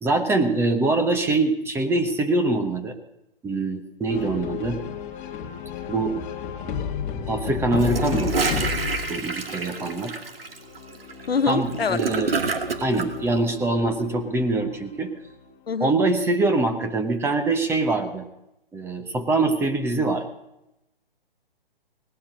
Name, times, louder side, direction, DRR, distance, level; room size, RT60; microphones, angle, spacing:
voice 1, 0.0-3.0 3.4-4.8 5.9-6.2 7.3-8.5 9.1-10.1 11.5-12.3 12.8-15.1 15.8-18.3 18.7-20.2, right 2 dB, 10° right, 1.1 m, -24 dB
sound 1, 4.1-9.3 10.5-15.4, left 7 dB, 20° left, 1.5 m, -33 dB
Gurgling / Toilet flush, 7.7-13.1, right 4 dB, 75° right, 2.1 m, -28 dB
voice 2, 11.3-12.0 15.7-16.0, left 5 dB, 85° left, 0.8 m, -24 dB
18.5 x 11.5 x 6.4 m
figure-of-eight pair, 135°, 30 cm